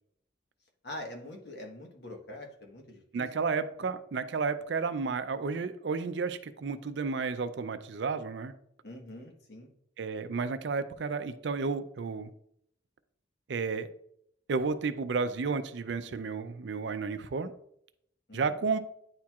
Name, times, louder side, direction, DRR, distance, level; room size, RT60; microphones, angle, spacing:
voice 1, 0.8-3.3 8.8-9.7 18.3-18.4, left 1 dB, 55° left, 1 dB, 1.2 m, -44 dB
voice 2, 3.1-8.5 10.0-12.3 13.5-13.9 14.5-17.5 18.3-18.8, right 4 dB, 65° right, 11 dB, 0.4 m, -32 dB
9.6 x 4.4 x 2.4 m, 0.71 s
head